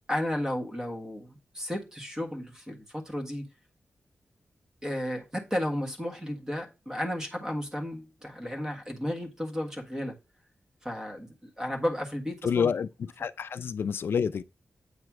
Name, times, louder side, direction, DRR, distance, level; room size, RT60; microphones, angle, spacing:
voice 1, 0.1-3.5 4.8-10.1 10.8-12.7, left 1 dB, 15° right, 1.6 m, -33 dB
voice 2, 12.4-14.4, left 7 dB, 70° left, 0.4 m, -28 dB
8.6 x 3.2 x 6.0 m
wide cardioid pair, 170°, 4 cm